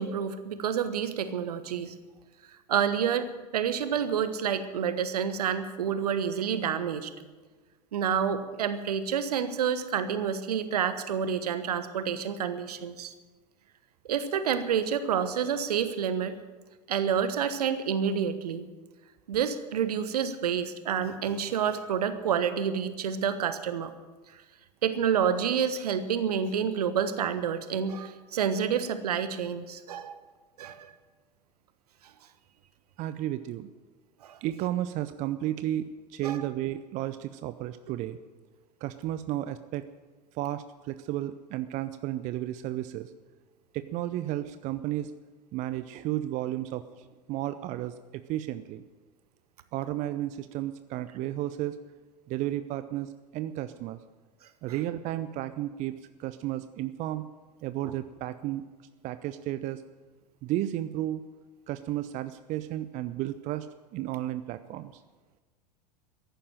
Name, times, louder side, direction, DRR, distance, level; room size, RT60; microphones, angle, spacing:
voice 1, 0.0-2.0 2.7-7.1 7.9-13.1 14.1-16.4 16.9-18.7 19.3-23.9 24.8-30.2 30.6-30.9 34.2-34.4 36.2-36.4 54.7-54.8 57.8-57.9, right 7 dB, 65° right, 12 dB, 1.2 m, -29 dB
voice 2, 33.0-33.7 34.4-38.2 38.8-39.8 40.3-43.1 43.7-45.1 45.5-48.8 49.7-51.8 52.3-54.0 54.6-57.2 57.6-58.6 59.0-59.8 60.4-61.2 61.7-63.7 63.9-65.0, right 13 dB, 35° right, 12 dB, 0.6 m, -33 dB
14.5 x 11.5 x 7.6 m, 1.3 s
figure-of-eight pair, 80°, 21 cm